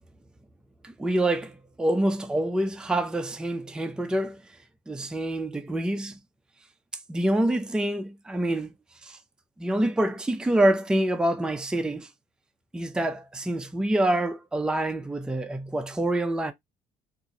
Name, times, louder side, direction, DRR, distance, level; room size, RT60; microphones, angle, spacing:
voice 1, 0.8-4.4 4.9-6.2 7.1-8.7 9.0-9.2 9.6-12.1 12.7-16.5, right 1 dB, 5° right, 0.4 m, -26 dB
3.7 x 2.6 x 2.8 m
cardioid pair, 120°, 15 cm